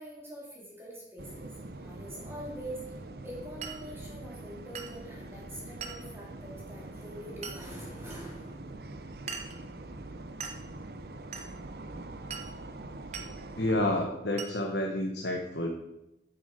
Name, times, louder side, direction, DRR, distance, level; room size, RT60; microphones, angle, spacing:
voice 1, 0.0-8.7, right 1 dB, 15° right, -4 dB, 2.6 m, -44 dB
sound 1, 1.2-14.1, right 2 dB, 60° right, 0.7 m, -44 dB
Glass, 3.6-3.8 4.7-5.0 5.8-6.1 7.4-7.6 8.1-8.2 9.3-9.6 10.4-10.6 11.3-11.5 12.3-12.5 13.1-13.3 14.4-14.6, right 6 dB, 40° right, 0.9 m, -40 dB
voice 2, 13.6-15.7, left 1 dB, 75° left, 1 dB, 1.1 m, -29 dB
9.2 x 7.7 x 5.0 m, 0.91 s
head